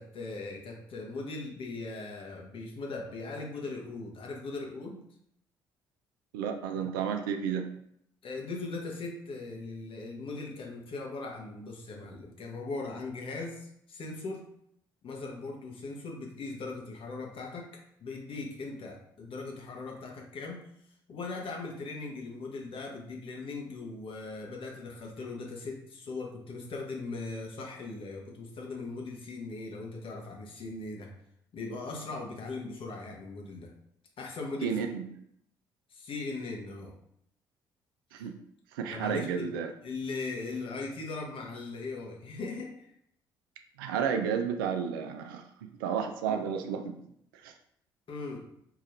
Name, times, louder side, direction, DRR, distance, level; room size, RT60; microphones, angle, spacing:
voice 1, 0.0-5.0 8.2-14.4 15.0-17.7 18.0-20.6 21.1-31.1 31.5-33.7 34.2-34.9 35.9-36.9 38.1-38.3 38.9-39.5 39.8-42.9 48.1-48.4, left 3 dB, 50° left, 0 dB, 1.1 m, -39 dB
voice 2, 6.3-7.7 34.6-35.1 38.1-38.4 38.7-39.7 43.8-45.5 45.8-47.0 47.4-47.5, right 7 dB, 80° right, 6 dB, 0.4 m, -31 dB
4.8 x 3.0 x 2.6 m, 0.73 s
hypercardioid pair, 45°, 11 cm